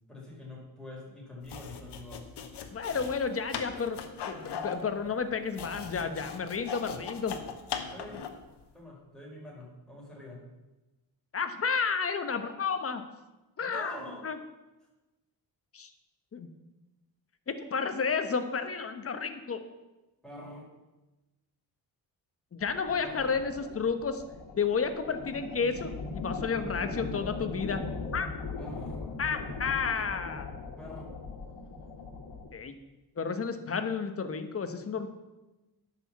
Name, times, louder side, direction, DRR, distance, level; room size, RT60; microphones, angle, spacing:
voice 1, 0.1-2.3 7.8-8.2 8.7-10.4 13.6-14.2 20.2-20.7 23.0-23.4 28.6-29.1 30.8-31.2, left 1 dB, ahead, -4 dB, 4.6 m, -45 dB
sound 1, 1.4-8.5, left 7 dB, 70° left, 1.3 m, -39 dB
voice 2, 2.7-4.0 4.3-7.4 11.3-13.0 13.6-14.0 14.2-14.4 15.7-15.9 16.3-16.5 17.5-19.6 22.5-24.2 24.6-27.8 28.1-28.3 29.2-30.5 32.5-32.7 33.2-35.1, left 5 dB, 35° left, 8 dB, 1.1 m, -31 dB
sound 2, 22.6-32.5, left 3 dB, 85° left, 1.9 m, -39 dB
10.5 x 6.1 x 7.4 m, 1.1 s
cardioid pair, 115°, 41 cm